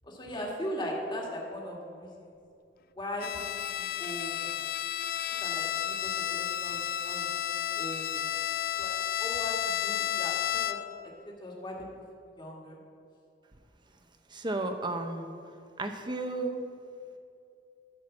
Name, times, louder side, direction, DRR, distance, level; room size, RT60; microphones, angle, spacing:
voice 1, 0.0-2.3 3.0-3.3 3.8-4.5 5.4-8.2 8.8-8.9 9.2-10.8 11.2-11.8 12.2-12.8, equal, 25° left, -2 dB, 1.9 m, -39 dB
Bowed string instrument, 3.2-11.0, left 11 dB, 55° left, 0.3 m, -32 dB
voice 2, 14.3-15.3 15.8-16.6, right 2 dB, 25° right, 6 dB, 0.9 m, -33 dB
13.0 x 4.7 x 7.3 m, 2.5 s
head